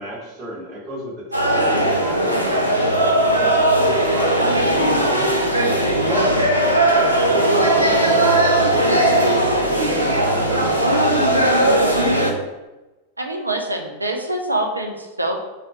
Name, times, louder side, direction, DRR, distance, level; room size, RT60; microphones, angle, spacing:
voice 1, 0.0-3.5 3.8-6.5 6.8-9.4 9.7-11.9, equal, 30° right, -7 dB, 1.0 m, -31 dB
sound 1, 1.3-12.3, right 1 dB, 90° left, 0.3 m, -18 dB
voice 2, 13.2-15.3, right 1 dB, 85° right, 2 dB, 0.3 m, -25 dB
2.3 x 2.1 x 2.6 m, 1.1 s
figure-of-eight pair, 90°, 0 cm